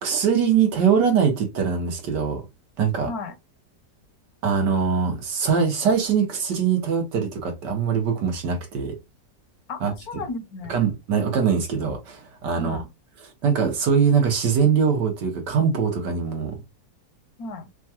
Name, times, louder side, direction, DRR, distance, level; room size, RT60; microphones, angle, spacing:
voice 1, 0.0-2.4 2.8-3.1 4.4-9.0 9.8-9.9 10.7-12.8 13.4-16.6, right 6 dB, 85° right, 1.8 m, -22 dB
voice 2, 3.0-3.4 9.7-10.7 12.5-12.9 17.4-17.7, left 3 dB, 70° left, 1.1 m, -34 dB
5.4 x 2.4 x 2.8 m
omnidirectional pair, 1.8 m